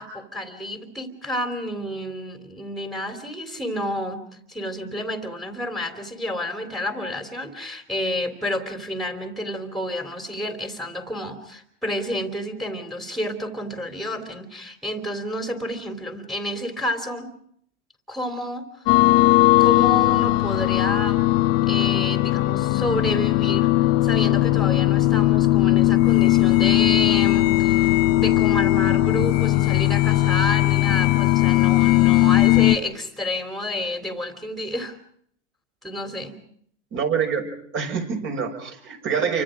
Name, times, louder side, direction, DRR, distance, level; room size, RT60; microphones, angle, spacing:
voice 1, 0.0-4.2 4.5-17.3 18.1-18.6 19.6-21.2 21.7-35.0 35.8-36.3, left 1 dB, ahead, 6 dB, 3.3 m, -30 dB
sound 1, 18.9-32.8, left 17 dB, 35° left, 1.0 m, -18 dB
voice 2, 36.9-37.5 37.7-39.4, right 6 dB, 30° right, 4 dB, 6.1 m, -25 dB
29.5 x 25.0 x 5.1 m, 0.66 s
hypercardioid pair, 130°, 38 cm